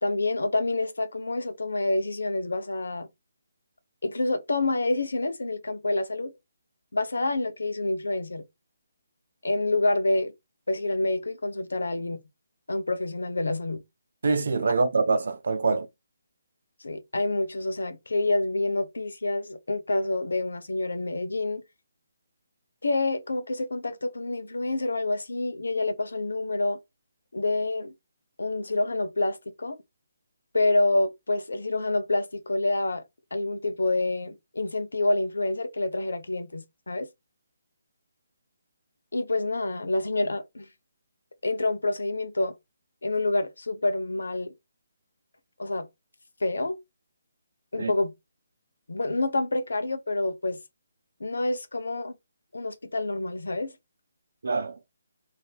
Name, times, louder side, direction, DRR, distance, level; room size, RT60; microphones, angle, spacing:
voice 1, 0.0-3.1 4.0-6.3 6.9-8.4 9.4-10.3 10.7-12.2 12.7-13.8 16.8-21.6 22.8-26.8 27.3-27.9 28.4-29.8 30.5-33.0 33.3-37.1 39.1-40.7 41.4-42.5 43.0-44.5 45.6-45.9 46.4-46.8 47.7-48.1 48.9-50.6 51.2-52.1 52.5-53.7, left 2 dB, 80° left, 0.8 m, -27 dB
voice 2, 14.2-15.9 47.7-47.9 54.4-54.8, right 4 dB, 65° right, 0.7 m, -25 dB
2.8 x 2.8 x 3.4 m
figure-of-eight pair, 150°, 0 cm